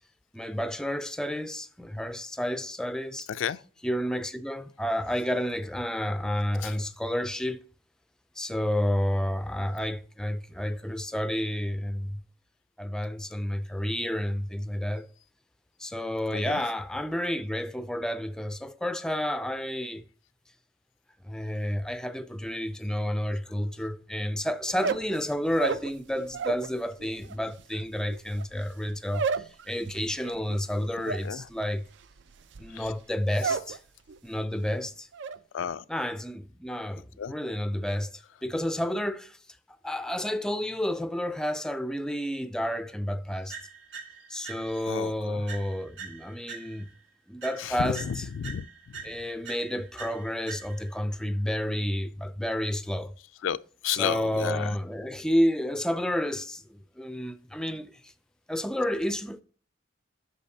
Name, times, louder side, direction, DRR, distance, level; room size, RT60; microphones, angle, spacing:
voice 1, 0.3-3.3 3.8-7.6 8.4-12.2 12.8-15.1 15.8-20.0 21.3-29.3 29.7-31.8 32.6-33.8 34.2-35.1 35.9-38.1 38.4-39.3 39.8-43.5 44.3-46.9 47.3-48.2 49.0-53.1 53.9-56.6 57.0-57.9 58.5-59.4, equal, 5° left, 0.3 m, -30 dB
voice 2, 3.3-3.6 6.6-6.7 16.3-16.6 31.2-31.4 32.8-32.9 35.5-35.8 37.2-37.3 44.9-45.5 47.6-48.7 53.4-53.6 53.8-54.8, left 8 dB, 80° left, 0.4 m, -32 dB
sound 1, 24.7-26.7 27.0-33.8 34.1-34.6 34.9-35.4, right 5 dB, 65° right, 0.4 m, -33 dB
sound 2, 43.5-45.0 45.5-47.0 47.4-51.0, right 6 dB, 85° right, 2.5 m, -44 dB
8.4 x 6.3 x 2.7 m
head